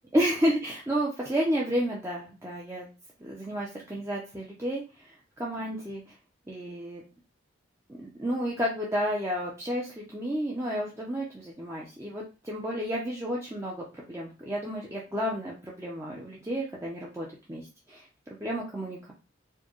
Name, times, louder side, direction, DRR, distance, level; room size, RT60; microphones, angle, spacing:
voice 1, 0.1-2.9 3.2-6.1 6.5-7.0 8.0-18.1 18.4-19.1, equal, 15° right, -4 dB, 0.5 m, -31 dB
4.4 x 2.2 x 3.0 m, 0.31 s
head